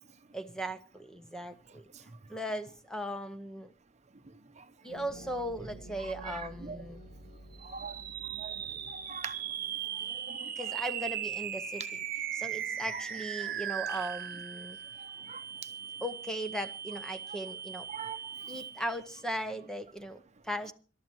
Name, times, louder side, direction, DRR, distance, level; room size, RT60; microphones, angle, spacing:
voice 1, 0.3-3.7 4.8-7.0 10.6-11.8 12.3-14.8 16.0-17.9 18.5-20.7, equal, 5° left, 0.7 m, -38 dB
sound 1, 4.9-10.3, right 1 dB, 55° left, 4.5 m, -51 dB
voice 2, 6.0-6.8 7.6-9.4 10.1-10.8 12.9-13.0 13.4-13.5 15.0-15.4 17.3-17.4 17.9-18.2, right 6 dB, 35° right, 0.8 m, -44 dB
sound 2, 7.5-19.1, right 9 dB, 50° right, 1.1 m, -38 dB
26.0 x 12.5 x 3.1 m
head